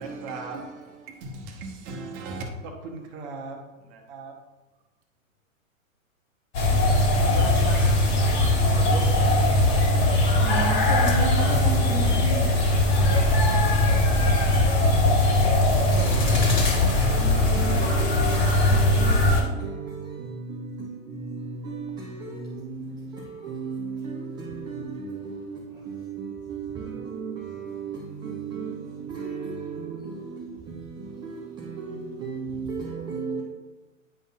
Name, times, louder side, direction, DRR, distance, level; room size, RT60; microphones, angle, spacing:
voice 1, 0.0-4.3, right 3 dB, 35° right, 1.2 m, -38 dB
sound 1, 6.5-19.4, left 1 dB, 30° left, 1.9 m, -20 dB
voice 2, 7.2-8.1 8.4-10.0 13.5-13.6, left 2 dB, 55° left, 1.8 m, -38 dB
voice 3, 10.4-12.6 17.1-33.4, right 5 dB, 10° right, 0.4 m, -34 dB
9.9 x 5.3 x 2.4 m
figure-of-eight pair, 110°, 41 cm